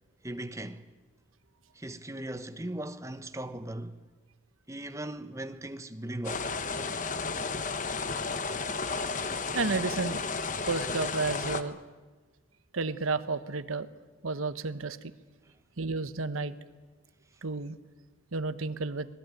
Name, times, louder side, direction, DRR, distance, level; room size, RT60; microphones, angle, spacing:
voice 1, 0.2-0.9 1.7-4.0 4.7-6.5, right 1 dB, 15° right, 1.0 m, -38 dB
sound 1, 6.2-11.6, left 4 dB, 40° left, 1.1 m, -33 dB
voice 2, 9.5-10.2 10.7-11.8 12.7-13.9 14.2-15.0 15.8-16.5 17.4-17.8 18.3-19.1, right 3 dB, 85° right, 1.1 m, -31 dB
25.5 x 19.5 x 9.1 m
head